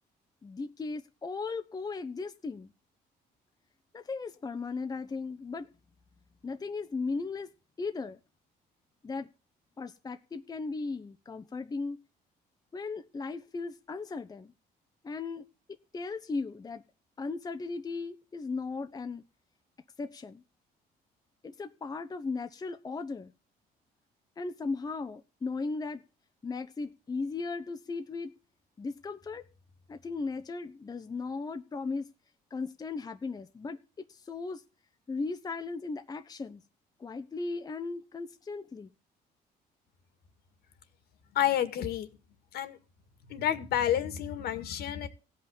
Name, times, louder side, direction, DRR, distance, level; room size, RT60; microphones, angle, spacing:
voice 1, 0.4-2.7 3.9-5.7 6.4-7.5 7.8-8.2 9.0-9.3 9.8-12.0 12.7-14.5 15.0-15.5 15.9-16.8 17.2-19.2 20.0-20.4 21.4-23.3 24.4-26.0 26.4-28.3 28.8-29.5 29.9-32.1 32.5-34.6 35.1-36.6 37.0-38.9, left 4 dB, 20° left, 0.9 m, -37 dB
voice 2, 41.3-42.1 42.5-42.8 43.3-45.1, left 10 dB, 70° left, 2.0 m, -29 dB
16.5 x 5.5 x 8.8 m
cardioid pair, 110°, 17 cm